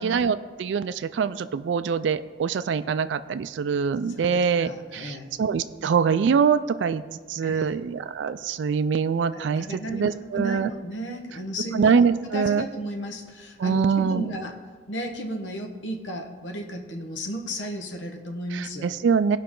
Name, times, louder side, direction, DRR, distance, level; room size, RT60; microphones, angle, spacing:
voice 1, 0.0-7.0 7.3-10.7 11.7-12.6 13.6-14.3 18.5-19.4, right 6 dB, 75° right, 12 dB, 0.3 m, -24 dB
voice 2, 4.2-5.3 7.4-7.7 9.3-14.5 14.9-18.9, equal, 85° left, 2 dB, 1.2 m, -34 dB
16.5 x 5.7 x 3.8 m, 1.5 s
head